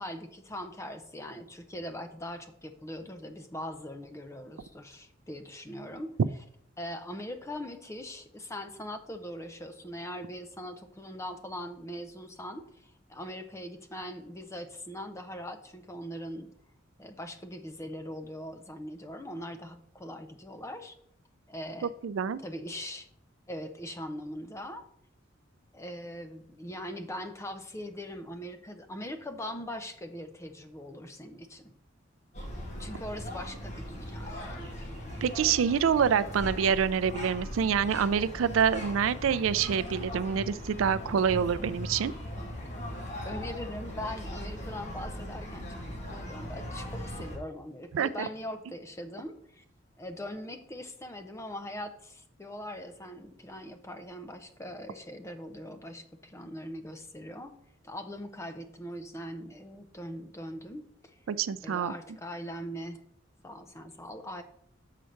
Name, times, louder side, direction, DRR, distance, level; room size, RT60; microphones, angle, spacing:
voice 1, 0.0-6.2 6.8-16.6 17.0-21.0 21.5-21.9 22.4-23.1 23.5-24.8 25.7-31.7 32.8-34.7 43.2-49.6 50.0-61.2 61.6-63.1 63.4-64.4, equal, 15° left, 8 dB, 0.6 m, -41 dB
voice 2, 22.0-22.4 35.2-42.1 47.9-48.3 61.3-61.9, right 7 dB, 90° right, 15 dB, 0.4 m, -26 dB
sound 1, 32.3-47.4, equal, 35° left, 2.0 m, -39 dB
6.7 x 4.4 x 6.4 m, 0.70 s
head